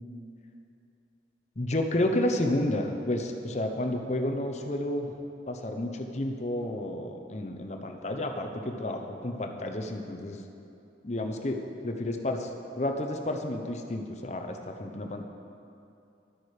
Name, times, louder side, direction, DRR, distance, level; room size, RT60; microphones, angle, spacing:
voice 1, 1.6-5.1 5.5-10.4 11.0-12.5 12.8-15.2, left 1 dB, 40° left, 4 dB, 0.7 m, -31 dB
11.5 x 8.9 x 4.9 m, 2.7 s
head